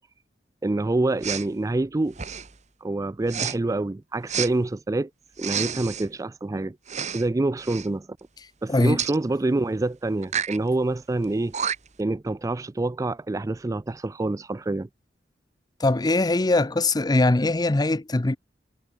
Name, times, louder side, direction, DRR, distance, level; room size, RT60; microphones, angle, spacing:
voice 1, 0.6-2.2 2.8-5.1 5.4-6.8 7.1-8.1 8.6-11.5 12.0-14.9, right 2 dB, 20° right, 0.4 m, -26 dB
Respiratory sounds, 1.2-1.5 2.1-2.6 3.3-3.6 4.3-4.5 5.4-6.1 6.9-7.3 7.6-7.9 9.0-9.2 10.2-10.6 11.2-11.3 11.5-12.0, right 8 dB, 40° right, 1.4 m, -29 dB
voice 2, 8.7-9.0 15.8-18.4, left 2 dB, 25° left, 0.6 m, -21 dB
head